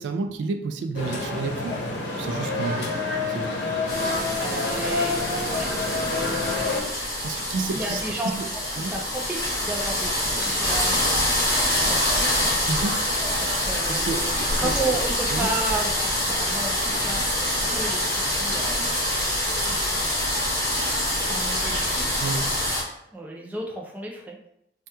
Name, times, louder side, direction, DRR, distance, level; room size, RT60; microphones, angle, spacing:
voice 1, 0.0-1.8 2.2-3.6 7.2-8.5 8.8-8.9 12.7-13.0 13.9-14.8 15.3-15.5 22.2-22.5, right 4 dB, 85° right, 8 dB, 0.3 m, -30 dB
sound 1, 0.9-6.8, left 3 dB, 70° left, 0.8 m, -27 dB
sound 2, 3.9-22.8, left 1 dB, 15° left, 0.8 m, -25 dB
voice 2, 4.1-7.1 7.7-8.4 8.8-11.0 11.8-12.6 13.4-18.9 19.5-20.4 21.2-22.5 23.1-24.4, right 2 dB, 10° right, -1 dB, 0.4 m, -34 dB
2.8 x 2.3 x 3.3 m, 0.79 s
head